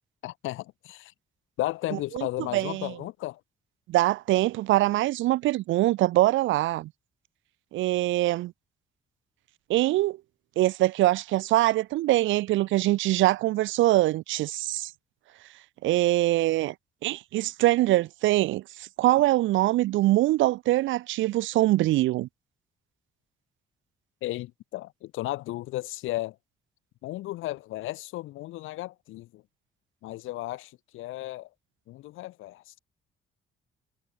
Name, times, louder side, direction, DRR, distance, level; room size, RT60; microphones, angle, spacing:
voice 1, 0.2-1.1 1.6-3.4 24.2-26.4 27.0-29.4 30.0-31.5 31.9-32.8, left 17 dB, 90° left, 1.1 m, -34 dB
voice 2, 2.5-2.9 3.9-6.9 7.7-8.5 9.7-10.2 10.6-14.9 15.8-16.7 17.0-22.3, right 16 dB, 75° right, 0.4 m, -23 dB
cardioid pair, 90°, 20 cm